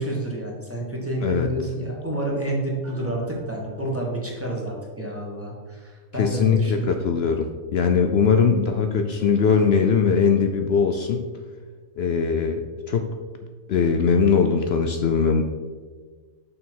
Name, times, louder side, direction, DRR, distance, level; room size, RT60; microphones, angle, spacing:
voice 1, 0.0-6.9, right 1 dB, 10° right, -2 dB, 1.3 m, -29 dB
sound 1, 2.8-4.3, right 2 dB, 90° right, 1.8 m, -41 dB
voice 2, 6.2-11.2 12.0-13.1 13.7-15.4, left 6 dB, 65° left, 5 dB, 0.6 m, -21 dB
6.4 x 5.4 x 4.5 m, 1.5 s
omnidirectional pair, 1.5 m